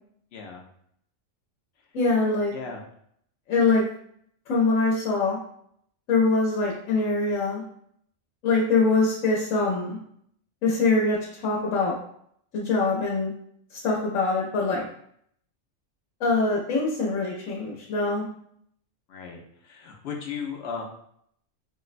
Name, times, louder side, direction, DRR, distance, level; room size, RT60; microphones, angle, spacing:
voice 1, 0.3-0.7 2.5-2.8 19.1-20.8, left 6 dB, 65° left, 1 dB, 0.7 m, -36 dB
voice 2, 1.9-2.5 3.5-3.8 4.5-5.4 6.1-7.6 8.4-10.0 10.6-11.9 12.5-13.3 13.7-14.8 16.2-18.2, left 3 dB, 80° left, -3 dB, 1.0 m, -23 dB
4.4 x 2.0 x 2.4 m, 0.67 s
omnidirectional pair, 1.3 m